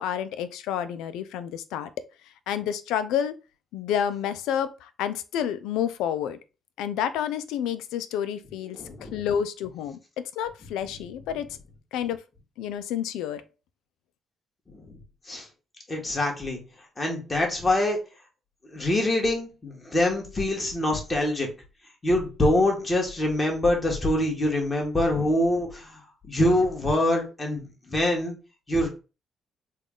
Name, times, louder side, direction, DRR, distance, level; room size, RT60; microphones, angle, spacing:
voice 1, 0.0-2.1 2.5-3.3 3.7-6.4 6.8-11.6 11.9-12.2 12.6-13.4, left 9 dB, 90° left, 0.3 m, -29 dB
voice 2, 8.7-9.2 14.7-15.0 15.3-15.4 15.9-16.6 17.0-18.0 18.7-21.5 22.0-26.0 26.3-28.4 28.7-28.9, left 1 dB, 25° left, 1.5 m, -25 dB
3.6 x 2.3 x 3.7 m
cardioid pair, 75°, 0 cm